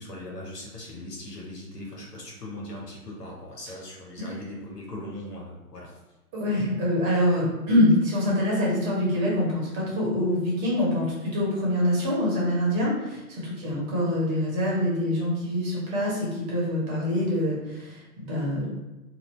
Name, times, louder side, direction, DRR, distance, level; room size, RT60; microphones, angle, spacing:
voice 1, 0.0-6.0, left 1 dB, 85° left, -2 dB, 1.1 m, -39 dB
voice 2, 6.3-18.7, left 1 dB, 25° right, -5 dB, 1.0 m, -25 dB
2.7 x 2.5 x 3.1 m, 1.1 s
figure-of-eight pair, 120°, 47 cm